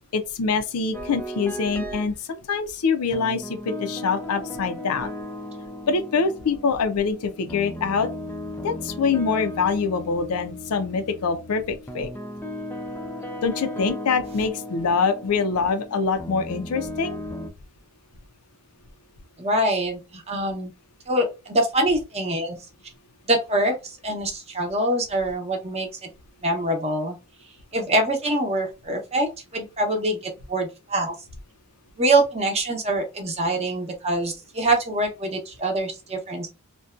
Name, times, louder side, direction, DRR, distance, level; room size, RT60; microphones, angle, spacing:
voice 1, 0.1-5.1 5.9-8.1 8.6-12.1 13.4-17.2, left 5 dB, 80° left, 0.5 m, -24 dB
sound 1, 0.9-2.1 3.1-17.5, left 1 dB, 10° left, 0.3 m, -36 dB
voice 2, 19.4-20.7 21.1-22.6 23.3-26.1 26.4-27.2 27.7-31.1 32.0-36.5, right 1 dB, 30° right, 0.7 m, -24 dB
2.6 x 2.2 x 2.4 m
head